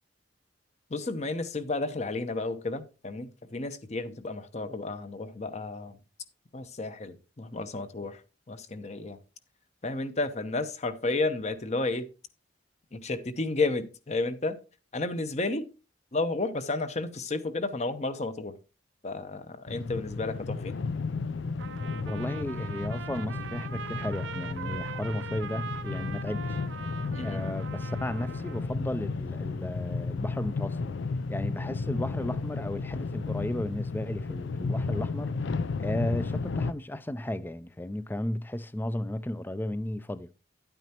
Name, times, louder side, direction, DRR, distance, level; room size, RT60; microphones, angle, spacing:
voice 1, 0.9-6.0 6.5-8.2 8.5-9.2 9.8-12.1 12.9-14.6 14.9-15.7 16.1-18.6 19.0-20.8 27.1-27.4, left 3 dB, 35° left, 0.8 m, -32 dB
sound 1, 19.7-36.7, left 4 dB, 75° left, 0.5 m, -33 dB
Trumpet, 21.6-28.7, right 6 dB, 80° right, 0.5 m, -41 dB
voice 2, 22.0-26.6 27.2-30.8 31.3-40.3, left 1 dB, 10° left, 0.3 m, -34 dB
10.5 x 9.0 x 2.9 m
head